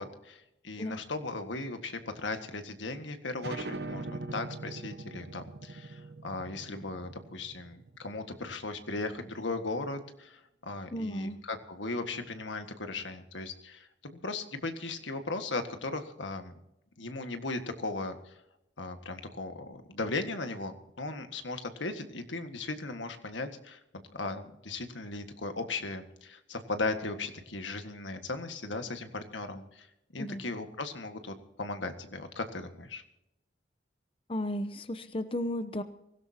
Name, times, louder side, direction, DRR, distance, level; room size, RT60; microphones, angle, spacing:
voice 1, 0.0-16.5 17.0-18.3 18.8-23.8 24.1-29.9 30.1-33.0, left 3 dB, 85° left, 7 dB, 1.8 m, -37 dB
sound 1, 3.4-8.7, right 2 dB, 60° right, 1.0 m, -42 dB
voice 2, 10.9-11.4 30.2-30.4 34.3-35.8, left 1 dB, 30° left, 10 dB, 0.7 m, -34 dB
24.5 x 16.5 x 2.9 m, 0.85 s
head